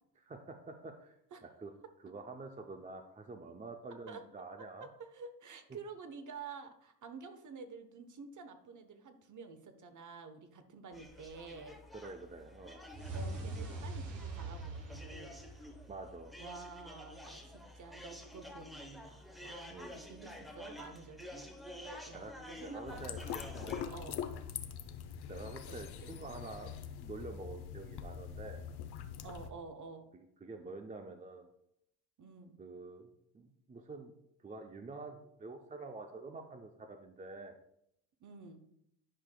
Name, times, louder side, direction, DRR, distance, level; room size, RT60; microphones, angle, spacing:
voice 1, 0.2-1.7 2.0-4.9 11.9-12.8 15.9-16.3 19.7-20.0 22.1-22.3 22.6-23.2 23.5-23.9 25.3-28.6 30.1-31.5 32.6-33.1 33.3-37.6, right 3 dB, 15° right, 5 dB, 0.5 m, -47 dB
voice 2, 4.8-11.8 13.1-15.4 16.4-21.5 22.1-23.3 23.9-24.2 25.7-25.8 29.2-30.1 32.2-32.6 38.2-38.6, right 4 dB, 40° right, 8 dB, 1.0 m, -50 dB
sound 1, 10.9-23.9, left 1 dB, ahead, 0.9 m, -50 dB
sound 2, 12.9-16.1, right 2 dB, 70° right, 1.4 m, -42 dB
sound 3, 22.9-29.5, left 8 dB, 55° left, 0.8 m, -43 dB
11.0 x 4.8 x 2.2 m, 0.76 s
supercardioid pair, 90°, 46 cm